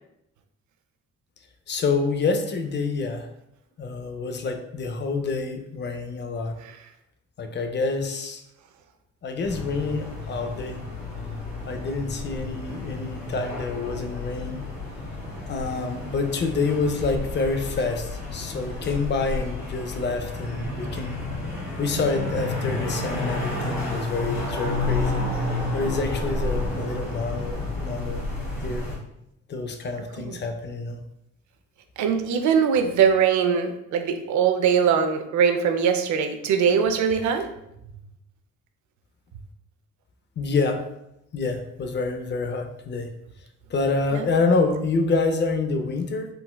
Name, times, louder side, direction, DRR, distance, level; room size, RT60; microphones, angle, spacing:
voice 1, 1.7-3.3 3.8-6.6 7.4-8.4 9.2-10.8 11.6-14.6 15.5-21.2 21.8-25.2 25.7-28.3 28.6-28.9 29.5-31.0 40.4-40.8 41.3-43.1 43.7-46.3, left 3 dB, 35° left, 6 dB, 0.4 m, -27 dB
sound 1, 9.4-29.0, left 2 dB, 65° left, 1.2 m, -31 dB
voice 2, 32.0-37.5 44.1-44.3, right 7 dB, 70° right, 6 dB, 0.5 m, -21 dB
3.9 x 2.1 x 2.2 m, 0.82 s
cardioid pair, 90°, 30 cm